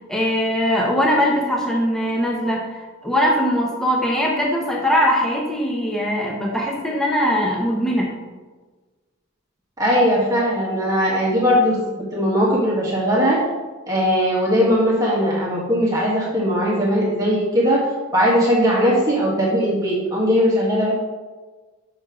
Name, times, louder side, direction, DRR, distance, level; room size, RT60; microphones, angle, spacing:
voice 1, 0.1-8.1, equal, ahead, -2 dB, 0.9 m, -21 dB
voice 2, 9.8-13.4 13.9-20.9, equal, 15° right, -6 dB, 1.4 m, -19 dB
5.7 x 4.3 x 6.1 m, 1.3 s
head